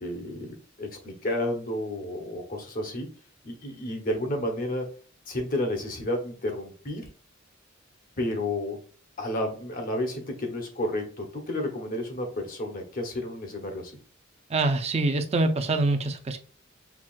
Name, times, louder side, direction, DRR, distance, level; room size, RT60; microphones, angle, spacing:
voice 1, 0.0-3.1 3.4-4.9 5.3-7.1 8.2-8.8 9.2-13.9, left 1 dB, 45° left, 3 dB, 0.9 m, -31 dB
voice 2, 14.5-16.4, right 2 dB, 35° right, 8 dB, 0.5 m, -25 dB
5.8 x 2.4 x 2.4 m, 0.39 s
head